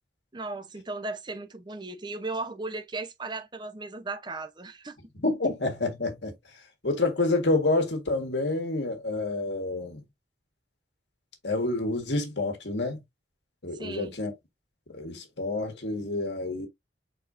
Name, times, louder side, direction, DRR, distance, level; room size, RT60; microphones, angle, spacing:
voice 1, 0.3-5.0 13.7-14.2, right 3 dB, 25° right, 0.7 m, -36 dB
voice 2, 5.2-6.3 6.8-10.0 11.4-13.0 13.6-14.3 14.9-16.7, left 2 dB, 75° left, 1.6 m, -28 dB
4.8 x 4.2 x 2.6 m
head